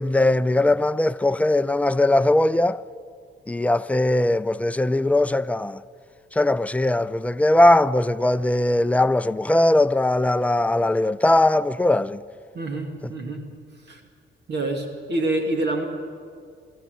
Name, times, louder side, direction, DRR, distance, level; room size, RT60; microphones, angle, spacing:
voice 1, 0.0-2.8 3.5-5.8 6.3-12.2 13.0-13.1, left 1 dB, 5° left, 0.5 m, -20 dB
voice 2, 12.5-13.4 13.9-14.0 14.5-15.9, right 2 dB, 60° right, 2.3 m, -26 dB
25.0 x 13.5 x 9.2 m
cardioid pair, 90°, 20 cm